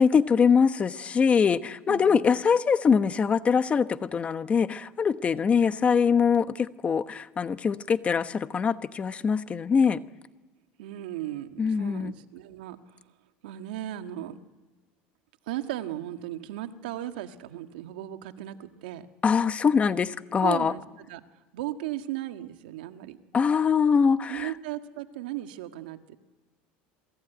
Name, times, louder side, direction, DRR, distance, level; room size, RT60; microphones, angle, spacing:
voice 1, 0.0-10.0 11.6-12.1 19.2-20.7 23.3-24.5, left 6 dB, 25° left, 12 dB, 1.0 m, -23 dB
voice 2, 1.9-2.4 10.8-13.0 13.4-14.4 15.5-19.1 20.4-21.2 21.5-23.2 24.3-26.2, right 13 dB, 90° right, 7 dB, 1.7 m, -36 dB
27.5 x 19.5 x 9.2 m, 1.3 s
supercardioid pair, 120°, 5 cm